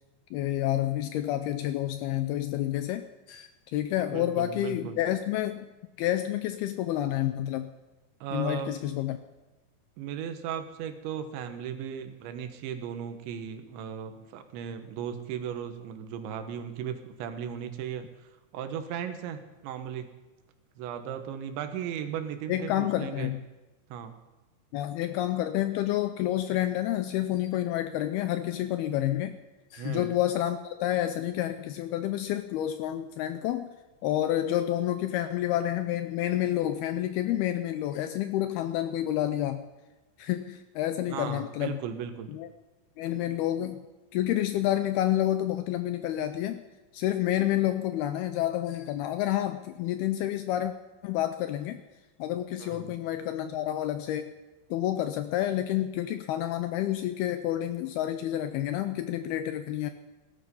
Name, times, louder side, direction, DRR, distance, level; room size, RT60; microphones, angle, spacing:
voice 1, 0.3-5.7 6.0-7.7 8.3-9.2 22.5-23.4 24.7-29.4 29.7-33.7 34.0-39.6 40.2-41.8 42.3-42.5 43.0-43.9 44.1-46.6 46.9-50.7 51.0-51.8 52.2-54.3 54.7-59.9, left 13 dB, 80° left, 9 dB, 2.3 m, -29 dB
voice 2, 4.1-5.0 8.2-8.7 10.0-18.1 18.5-20.1 20.8-23.3 23.9-24.1 29.8-30.1 41.1-42.3 52.6-53.0, right 8 dB, 85° right, 8 dB, 3.5 m, -36 dB
17.5 x 12.5 x 5.5 m, 1.1 s
omnidirectional pair, 5.1 m